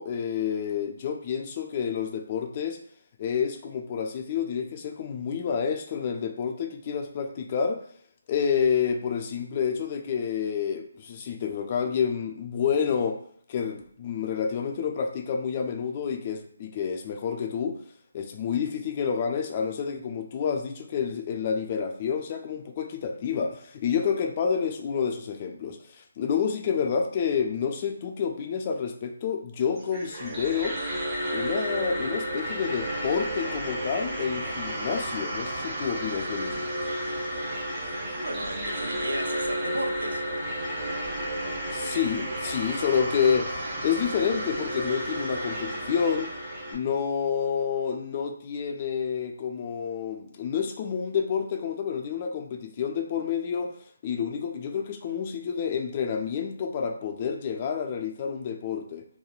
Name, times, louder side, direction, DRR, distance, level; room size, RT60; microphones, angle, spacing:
voice 1, 0.0-2.8 3.2-7.8 8.3-13.2 13.5-17.8 18.1-30.8 31.3-36.7 41.7-46.3 46.7-53.7 54.0-59.1, left 7 dB, 30° left, 4 dB, 0.3 m, -29 dB
sound 1, 29.8-46.8, right 1 dB, 25° right, 0.7 m, -32 dB
voice 2, 38.1-40.2, right 1 dB, 85° right, 5 dB, 0.5 m, -34 dB
3.1 x 2.1 x 2.3 m, 0.62 s
figure-of-eight pair, 155°, 0 cm